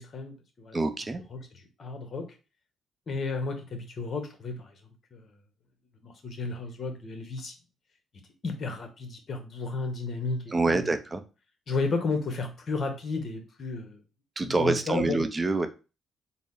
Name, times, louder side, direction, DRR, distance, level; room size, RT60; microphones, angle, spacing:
voice 1, 0.0-0.8 1.3-2.3 3.1-4.7 5.1-5.3 6.0-7.5 8.4-10.9 11.7-14.0 14.4-15.2, left 3 dB, 50° left, 5 dB, 1.0 m, -33 dB
voice 2, 0.7-1.2 10.5-11.2 14.4-15.7, right 3 dB, 25° right, 8 dB, 0.5 m, -26 dB
3.9 x 2.0 x 3.8 m, 0.31 s
cardioid pair, 90°, 0 cm